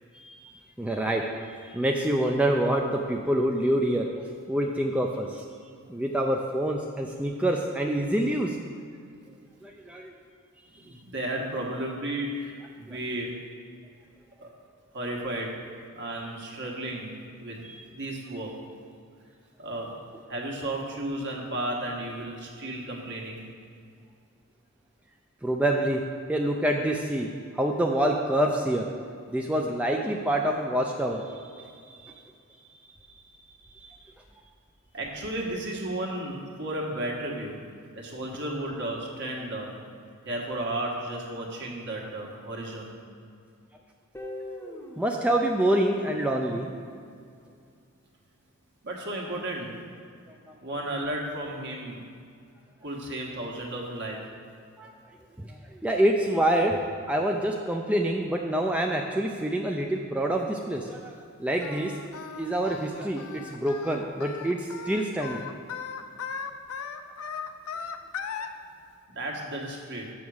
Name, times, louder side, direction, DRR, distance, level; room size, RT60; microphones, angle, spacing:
voice 1, 0.1-0.5 0.8-5.4 5.9-8.6 9.6-10.1 17.6-17.8 25.4-26.0 26.3-27.3 27.5-28.8 29.3-32.2 32.9-33.0 33.7-34.0 45.0-46.7 54.8-54.9 55.4-56.8 57.1-61.1 61.4-61.9 62.4-65.5, right 1 dB, 5° right, 0 dB, 0.4 m, -26 dB
voice 2, 10.7-13.4 14.4-14.5 14.9-15.6 15.9-17.6 17.9-18.6 19.6-20.0 20.3-23.4 34.9-37.7 37.9-39.7 40.2-42.9 48.8-49.8 50.6-52.0 52.8-54.3 69.1-70.1, right 1 dB, 55° right, -1 dB, 1.4 m, -33 dB
Guitar, 44.1-47.1, left 1 dB, 10° left, 0.8 m, -43 dB
Singing, 61.6-68.5, left 6 dB, 70° left, 0.5 m, -37 dB
7.2 x 5.9 x 6.3 m, 2.3 s
head